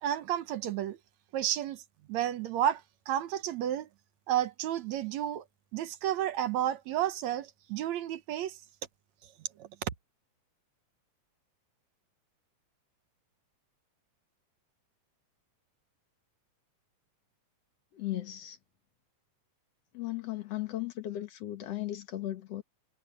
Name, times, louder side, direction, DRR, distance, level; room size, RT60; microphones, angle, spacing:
voice 1, 0.0-1.0 1.3-1.8 2.1-2.8 3.1-3.9 4.3-5.4 5.7-8.6 9.6-9.7, right 11 dB, 70° right, 2.1 m, -31 dB
voice 2, 17.9-18.6 19.9-22.6, left 14 dB, 60° left, 2.3 m, -36 dB
omnidirectional pair, 3.5 m